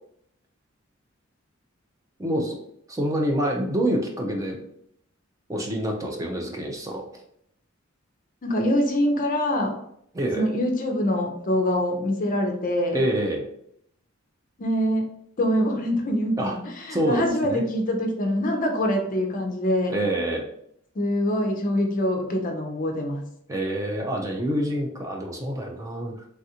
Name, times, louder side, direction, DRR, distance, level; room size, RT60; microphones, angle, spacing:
voice 1, 2.2-2.6 2.9-4.6 5.5-7.0 10.1-10.5 12.9-13.5 16.4-16.6 16.9-17.6 19.9-20.5 23.5-26.2, right 1 dB, 15° right, 1 dB, 0.4 m, -26 dB
voice 2, 8.4-9.7 10.4-13.0 14.6-15.0 15.4-16.6 16.9-19.9 21.0-23.2, left 1 dB, 40° left, 3 dB, 0.5 m, -24 dB
3.2 x 2.4 x 2.8 m, 0.70 s
head